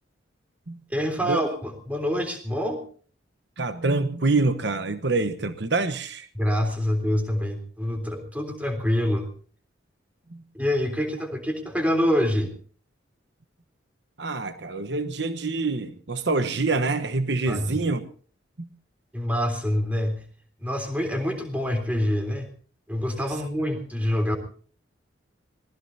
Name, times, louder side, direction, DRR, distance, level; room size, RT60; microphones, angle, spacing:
voice 1, 0.9-2.8 6.3-9.3 10.5-12.5 17.5-17.7 19.1-20.2 20.6-22.5 22.9-24.4, equal, 10° right, 3.4 m, -26 dB
voice 2, 3.6-6.3 10.3-10.4 14.2-18.1 18.6-18.7, right 3 dB, 65° right, 1.1 m, -26 dB
25.5 x 19.5 x 2.8 m
head